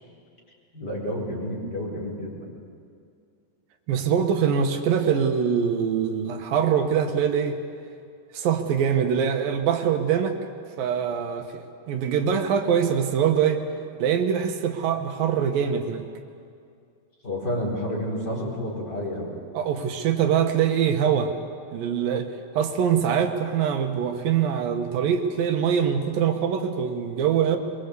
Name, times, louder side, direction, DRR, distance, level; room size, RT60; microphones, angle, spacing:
voice 1, 0.7-2.5 17.2-19.4, left 1 dB, 25° left, -2 dB, 4.9 m, -30 dB
voice 2, 3.9-7.6 8.3-10.4 10.8-13.6 14.0-16.1 19.5-21.3 21.7-22.3 22.5-27.6, right 8 dB, 75° right, 6 dB, 2.9 m, -23 dB
24.0 x 22.5 x 8.4 m, 2.3 s
omnidirectional pair, 4.1 m